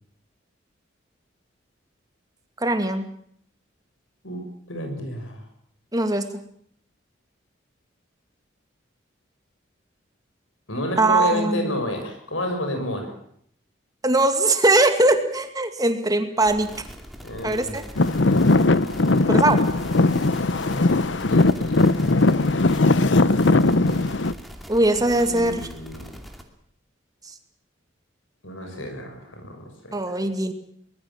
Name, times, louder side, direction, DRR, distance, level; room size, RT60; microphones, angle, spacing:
voice 1, 2.6-3.1 5.9-6.4 11.0-11.8 14.0-16.7 17.4-17.8 19.3-19.6 24.7-25.7 29.9-30.5, right 2 dB, 20° right, 7 dB, 2.2 m, -21 dB
voice 2, 4.7-5.4 10.7-13.1 17.2-17.8 21.2-22.1 25.2-26.0 28.4-30.2, left 1 dB, 85° left, 5 dB, 6.8 m, -30 dB
sound 1, 16.4-26.4, equal, ahead, 2.6 m, -41 dB
Traffic noise roadway noise / Engine, 18.0-24.3, left 2 dB, 65° left, 0.9 m, -19 dB
23.5 x 20.0 x 7.4 m, 0.65 s
head